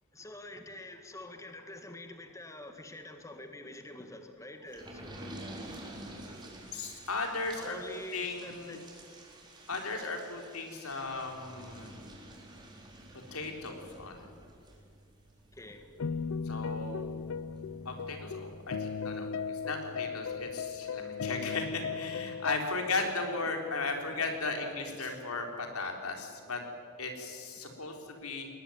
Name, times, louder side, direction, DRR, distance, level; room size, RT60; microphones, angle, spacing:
voice 1, 0.1-5.5 7.6-8.9 15.5-15.9, left 1 dB, 15° left, 6 dB, 1.7 m, -46 dB
sound 1, 4.7-19.0 19.5-19.6 19.8-19.9, right 1 dB, 20° right, 4.0 m, -50 dB
voice 2, 6.7-8.8 9.7-12.0 13.3-14.3 16.4-17.1 17.8-26.6 27.0-28.5, left 3 dB, 90° left, 3 dB, 4.0 m, -36 dB
sound 2, 16.0-22.6, left 5 dB, 65° left, 0.5 m, -37 dB
20.5 x 19.0 x 9.4 m, 2.4 s
head